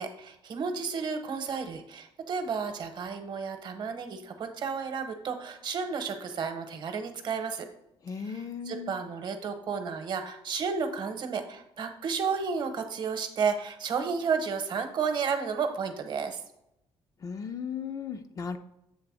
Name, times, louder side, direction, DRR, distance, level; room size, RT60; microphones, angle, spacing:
voice 1, 0.0-7.7 8.2-16.4, right 5 dB, 45° right, 7 dB, 0.9 m, -32 dB
voice 2, 8.0-8.9 17.2-18.6, left 6 dB, 35° left, 8 dB, 0.4 m, -36 dB
7.8 x 3.4 x 6.0 m, 0.82 s
cardioid pair, 150°, 10 cm